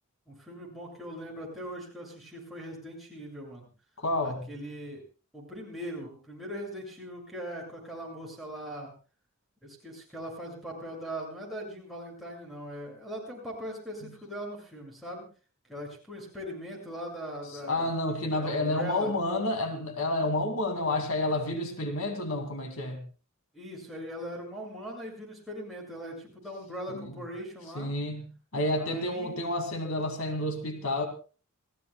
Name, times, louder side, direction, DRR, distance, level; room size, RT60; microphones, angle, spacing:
voice 1, 0.3-3.7 4.2-5.0 5.3-8.9 9.6-15.3 15.7-17.9 18.4-19.1 23.5-27.9 28.8-29.3, equal, ahead, -3 dB, 6.7 m, -40 dB
voice 2, 4.0-4.4 14.0-14.1 17.6-23.0 26.9-27.1 27.7-31.1, left 1 dB, 70° left, 5 dB, 2.3 m, -30 dB
28.5 x 15.5 x 2.3 m, 0.35 s
head